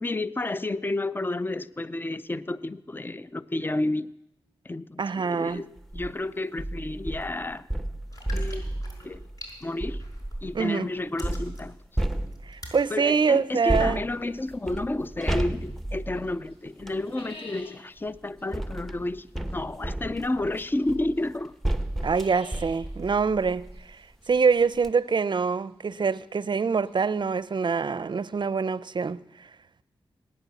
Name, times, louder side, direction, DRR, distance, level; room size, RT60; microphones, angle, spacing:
voice 1, 0.0-4.1 4.6-7.7 8.3-8.7 9.0-9.2 9.6-10.0 10.4-11.8 12.9-21.5, left 2 dB, 20° left, 0.6 m, -31 dB
voice 2, 5.0-5.6 10.5-10.9 12.5-14.0 22.0-24.0 24.3-29.2, right 5 dB, 55° right, 0.5 m, -25 dB
sound 1, 5.8-6.1 6.6-10.6 11.2-12.8 13.7-17.0 18.0-23.9 24.3-24.4 24.7-24.9, right 1 dB, ahead, 1.1 m, -33 dB
sound 2, 8.1-10.5 10.8-12.9 13.4-13.5, left 1 dB, 40° left, 5.2 m, -44 dB
sound 3, 13.8-15.8 16.1-27.6, left 2 dB, 85° left, 4.4 m, -52 dB
19.0 x 9.6 x 7.0 m
cardioid pair, 50°, 10 cm